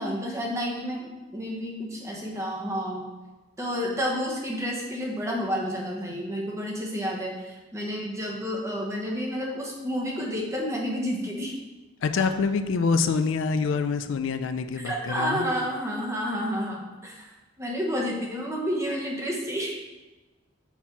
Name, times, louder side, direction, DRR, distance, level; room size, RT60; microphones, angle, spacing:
voice 1, 0.0-3.1 3.6-11.5 12.2-12.3 14.8-17.3 17.6-19.8, equal, 15° right, -2 dB, 1.0 m, -30 dB
voice 2, 12.0-15.5, left 4 dB, 75° left, 9 dB, 0.4 m, -26 dB
5.7 x 4.3 x 4.5 m, 1.2 s
head